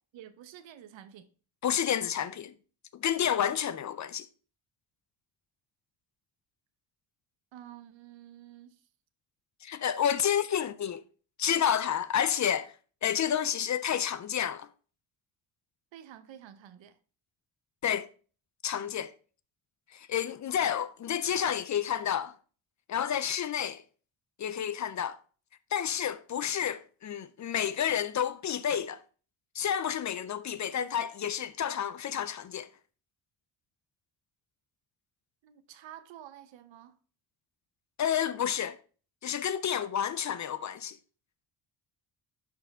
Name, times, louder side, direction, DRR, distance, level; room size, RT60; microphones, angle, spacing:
voice 1, 0.1-1.3 7.5-8.8 10.5-10.7 15.9-17.0 35.4-37.0, right 10 dB, 75° right, 0.9 m, -50 dB
voice 2, 1.6-2.5 2.9-4.3 9.6-11.0 11.4-12.7 13.0-14.7 17.8-18.1 18.6-19.1 19.9-22.3 22.9-23.8 24.4-25.2 25.7-29.0 29.5-32.7 38.0-38.8 39.2-41.0, left 9 dB, 40° left, 0.4 m, -30 dB
10.5 x 4.4 x 3.5 m
cardioid pair, 115°, 46 cm